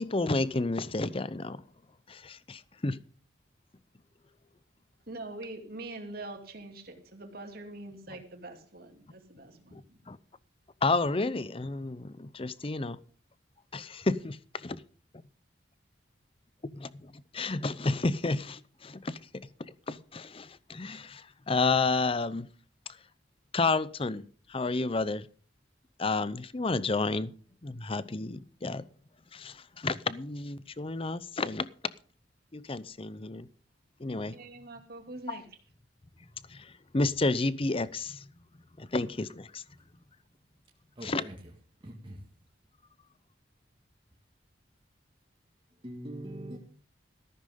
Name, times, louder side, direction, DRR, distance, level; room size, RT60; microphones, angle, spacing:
voice 1, 0.0-1.6 2.1-3.0 9.7-10.2 10.8-13.0 13.7-14.8 16.6-19.5 19.9-22.5 23.5-24.2 24.5-25.3 26.0-27.3 27.6-28.9 29.3-31.7 32.5-33.5 34.0-34.4 35.3-35.4 36.5-38.2 38.8-39.6 41.0-41.2, left 3 dB, 30° left, 0.6 m, -31 dB
voice 2, 5.1-10.0 34.1-35.5, right 2 dB, 55° right, 2.6 m, -44 dB
voice 3, 41.0-41.3 41.8-42.2 45.8-46.6, right 1 dB, 25° right, 1.9 m, -42 dB
14.0 x 13.0 x 3.8 m
head